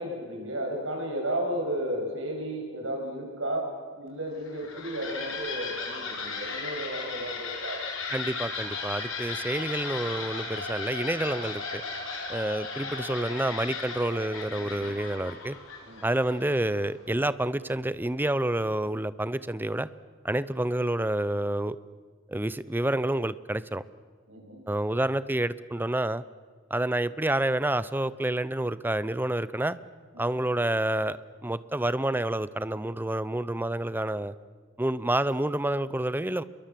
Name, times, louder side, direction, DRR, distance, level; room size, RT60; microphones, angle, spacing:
voice 1, 0.0-7.8 15.8-16.1 24.3-24.6 30.1-30.3, right 1 dB, 75° right, 2 dB, 7.5 m, -33 dB
sound 1, 4.4-16.9, left 4 dB, 90° left, 5.3 m, -36 dB
voice 2, 8.1-11.8 12.3-15.6 16.0-19.9 20.2-21.8 22.3-23.8 24.7-26.2 26.7-29.8 30.2-34.3 34.8-36.4, right 1 dB, 10° right, 16 dB, 0.7 m, -28 dB
28.0 x 22.5 x 7.6 m, 1.5 s
head